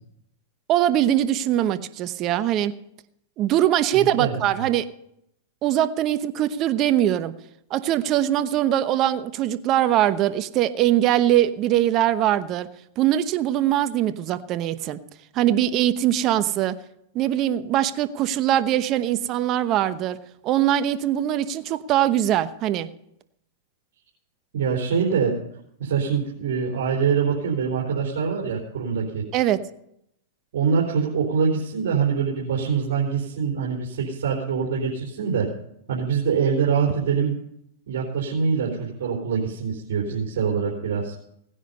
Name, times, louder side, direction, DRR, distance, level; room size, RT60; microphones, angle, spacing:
voice 1, 0.7-2.7 3.4-4.9 5.6-7.3 7.7-12.7 13.0-15.0 15.3-16.8 17.1-20.2 20.4-22.9 29.3-29.6, right 12 dB, 40° right, 12 dB, 0.9 m, -22 dB
voice 2, 3.9-4.4 24.5-25.4 25.8-29.3 30.5-35.5 35.9-37.4 37.9-41.1, right 6 dB, 70° right, -3 dB, 3.7 m, -24 dB
18.0 x 10.0 x 5.4 m, 0.76 s
hypercardioid pair, 120°, 0 cm